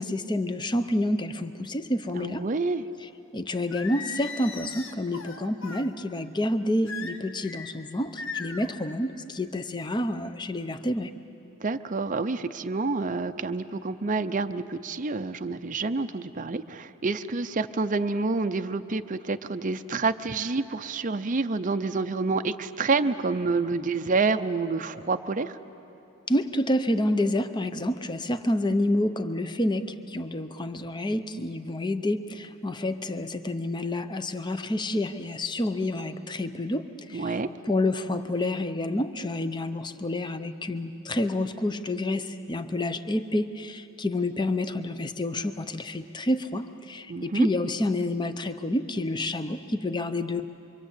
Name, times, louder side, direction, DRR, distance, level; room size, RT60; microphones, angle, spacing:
voice 1, 0.0-2.4 3.3-11.1 26.3-37.3 37.6-50.5, left 1 dB, 20° left, 10 dB, 0.7 m, -28 dB
voice 2, 2.1-2.8 11.6-25.6 37.1-37.5 47.1-47.5, right 3 dB, 35° right, 9 dB, 0.6 m, -28 dB
Singing, 3.7-5.9 6.9-7.7 8.2-8.7, left 5 dB, 60° left, 1.4 m, -38 dB
25.5 x 24.5 x 8.3 m, 2.9 s
head